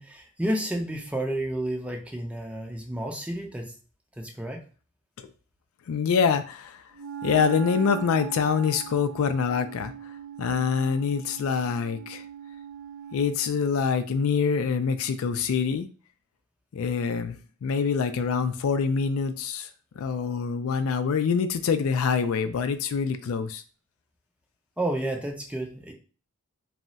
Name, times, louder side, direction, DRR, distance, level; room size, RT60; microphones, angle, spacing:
voice 1, 0.0-3.7 4.2-4.6 24.8-25.9, right 1 dB, 5° right, 1 dB, 0.4 m, -31 dB
voice 2, 5.9-6.8 7.2-9.9 10.4-12.2 13.1-15.9 16.7-19.7 20.0-23.6, left 6 dB, 75° left, 10 dB, 0.3 m, -25 dB
Wind instrument woodwind instrument, 7.0-13.6, right 8 dB, 65° right, 0.5 m, -39 dB
2.3 x 2.0 x 3.8 m, 0.38 s
head